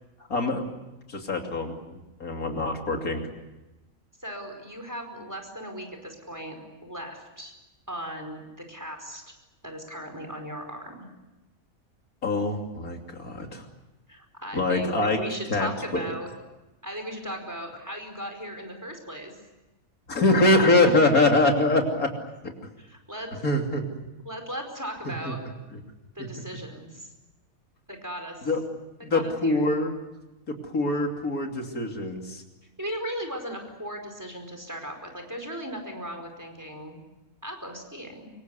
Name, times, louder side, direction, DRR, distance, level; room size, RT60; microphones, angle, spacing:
voice 1, 0.3-0.7 1.1-1.7 2.2-3.3 12.2-13.6 14.5-15.2 15.5-16.1 20.1-22.1 23.4-23.8 25.0-25.3 26.2-26.3 28.4-28.6 29.0-29.9 30.5-32.4, left 2 dB, 85° left, 2 dB, 3.4 m, -24 dB
voice 2, 4.2-6.5 6.8-7.5 7.9-8.4 8.7-9.3 9.6-11.1 14.1-16.3 16.8-19.3 20.6-20.9 22.8-23.4 24.2-25.4 26.1-27.1 27.9-28.5 29.1-29.6 32.8-37.0 37.4-38.3, equal, 10° right, 4 dB, 4.9 m, -37 dB
25.0 x 23.5 x 8.1 m, 1.0 s
omnidirectional pair, 1.5 m